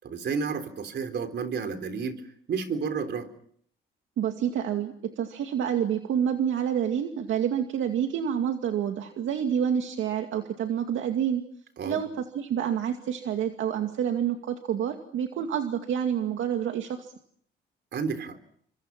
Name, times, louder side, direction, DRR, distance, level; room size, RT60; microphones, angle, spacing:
voice 1, 0.0-2.2 2.5-3.3 11.8-12.0 17.9-18.4, right 5 dB, 60° right, 8 dB, 3.9 m, -31 dB
voice 2, 4.2-11.4 11.8-17.1, right 9 dB, 75° right, 5 dB, 2.3 m, -28 dB
29.5 x 25.0 x 6.0 m, 0.64 s
cardioid pair, 90°, 20 cm